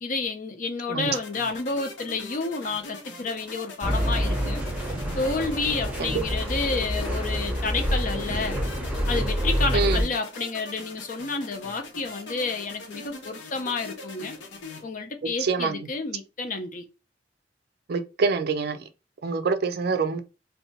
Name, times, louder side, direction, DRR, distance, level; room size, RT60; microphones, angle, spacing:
voice 1, 0.0-4.6 5.2-8.6 9.1-14.4 14.8-16.8, left 4 dB, 45° left, 0.6 m, -30 dB
sound 1, 1.1-14.8, left 3 dB, 80° left, 0.8 m, -42 dB
sound 2, 3.8-10.0, equal, 5° right, 0.7 m, -27 dB
voice 2, 15.4-15.8 17.9-18.8 19.2-20.2, right 4 dB, 55° right, 0.4 m, -25 dB
2.7 x 2.3 x 3.9 m
head